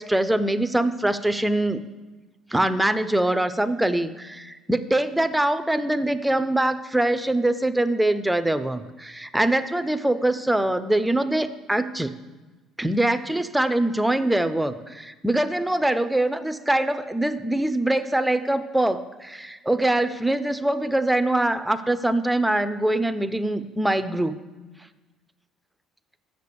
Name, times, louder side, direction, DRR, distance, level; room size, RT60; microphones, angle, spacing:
voice 1, 0.0-1.8 2.5-12.2 12.8-24.3, right 1 dB, 5° right, 11 dB, 0.4 m, -23 dB
6.8 x 6.6 x 6.7 m, 1.2 s
cardioid pair, 135°, 0 cm